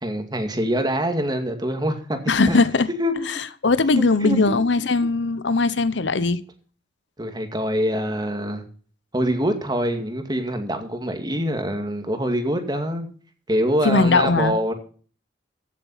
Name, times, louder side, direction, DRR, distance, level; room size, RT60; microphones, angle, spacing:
voice 1, 0.0-2.2 2.5-2.6 3.0-3.3 4.0-4.6 7.2-8.6 9.1-13.1 13.5-14.7, equal, 25° right, 2.1 m, -25 dB
voice 2, 2.3-2.9 3.6-6.4 13.8-14.5, left 3 dB, 75° left, 0.9 m, -19 dB
15.5 x 7.3 x 5.6 m
head